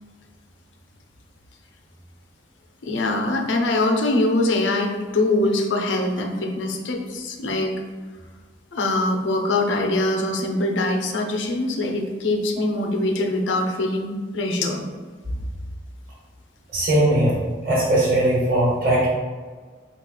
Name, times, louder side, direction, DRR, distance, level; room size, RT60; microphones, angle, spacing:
voice 1, 2.8-7.7 8.7-14.8, left 2 dB, 90° left, 3 dB, 0.6 m, -23 dB
voice 2, 16.7-19.1, right 1 dB, 50° right, -6 dB, 1.1 m, -20 dB
4.2 x 2.4 x 3.8 m, 1.5 s
head